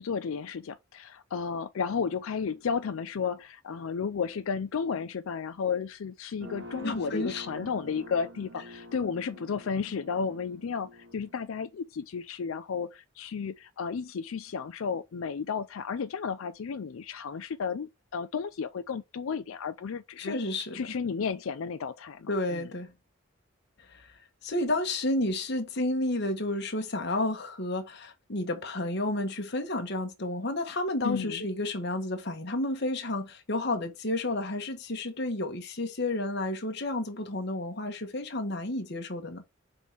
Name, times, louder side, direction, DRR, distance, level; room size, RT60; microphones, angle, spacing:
voice 1, 0.0-20.4 20.7-22.7 31.0-31.4, left 6 dB, 80° left, 0.4 m, -33 dB
sound 1, 6.4-11.4, left 1 dB, 60° right, 0.9 m, -47 dB
voice 2, 6.8-7.7 20.2-20.8 22.3-22.9 23.9-24.1 24.4-39.4, left 2 dB, 55° left, 1.2 m, -31 dB
5.4 x 3.9 x 4.5 m
head